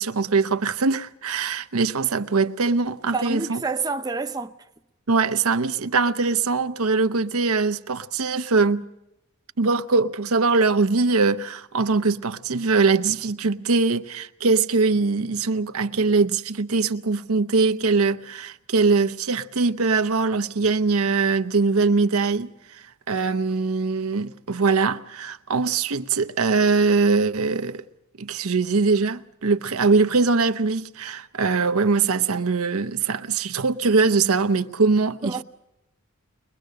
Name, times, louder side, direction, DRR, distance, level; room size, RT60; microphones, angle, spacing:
voice 1, 0.0-3.6 5.1-8.9 9.6-27.8 28.2-35.4, right 4 dB, 85° right, 0.8 m, -22 dB
voice 2, 3.1-4.5 35.2-35.4, right 4 dB, 20° right, 0.7 m, -28 dB
23.5 x 21.0 x 6.5 m
head